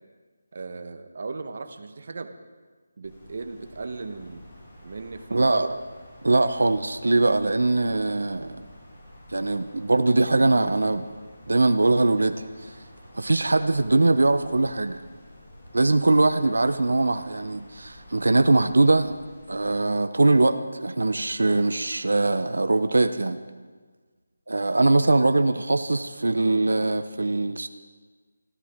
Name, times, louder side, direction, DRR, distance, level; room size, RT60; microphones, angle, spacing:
voice 1, 0.5-2.4 3.0-4.4 4.8-5.7, right 4 dB, 45° right, 8 dB, 1.1 m, -37 dB
Wind, 3.0-19.8, left 1 dB, 25° left, 5.3 m, -49 dB
voice 2, 5.3-5.8 6.2-8.6 9.3-11.1 11.5-12.7 13.1-15.0 15.7-19.2 19.5-23.4 24.5-27.7, right 2 dB, 85° right, 10 dB, 0.8 m, -22 dB
25.5 x 13.5 x 3.7 m, 1.4 s
figure-of-eight pair, 175°, 0 cm